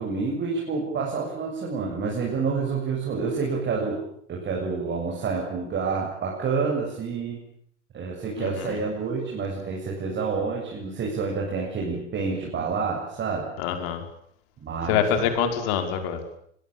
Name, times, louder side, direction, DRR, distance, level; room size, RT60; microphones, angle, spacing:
voice 1, 0.0-4.0 4.3-7.4 7.9-13.5 14.6-15.3, right 4 dB, 30° right, -1 dB, 7.5 m, -28 dB
voice 2, 8.4-8.8 13.6-14.0 14.9-16.2, left 8 dB, 55° left, 7 dB, 5.5 m, -25 dB
25.0 x 22.0 x 8.8 m, 0.67 s
figure-of-eight pair, 85°, 36 cm